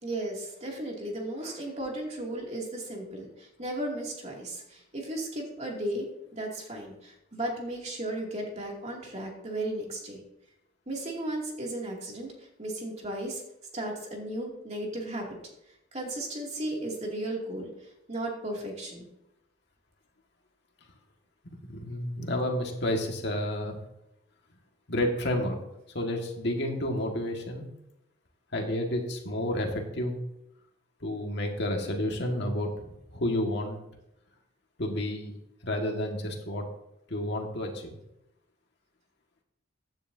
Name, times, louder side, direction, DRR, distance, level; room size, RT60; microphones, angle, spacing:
voice 1, 0.0-6.1 6.3-10.2 10.9-13.4 13.7-15.3 15.9-19.1, right 1 dB, 35° right, -1 dB, 2.6 m, -35 dB
voice 2, 21.7-23.8 24.9-25.6 25.9-27.7 28.5-30.1 31.0-33.8 34.8-35.3 35.6-36.6 37.1-37.9, left 1 dB, 60° left, 1 dB, 1.9 m, -30 dB
15.5 x 9.7 x 2.8 m, 0.82 s
head